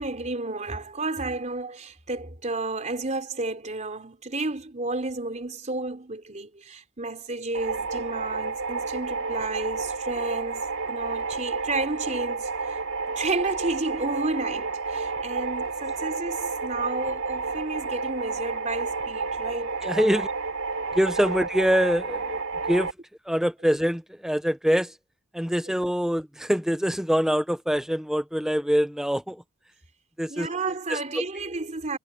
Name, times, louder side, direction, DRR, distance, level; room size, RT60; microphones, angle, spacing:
voice 1, 0.0-12.8 13.2-20.3 30.3-32.0, right 3 dB, 35° right, 3.5 m, -31 dB
sound 1, 7.5-22.9, right 4 dB, 90° right, 3.0 m, -31 dB
voice 2, 19.8-20.3 20.9-22.4 22.7-22.9 23.3-24.9 25.3-29.4 30.2-30.5 30.9-31.0, equal, ahead, 0.7 m, -24 dB
head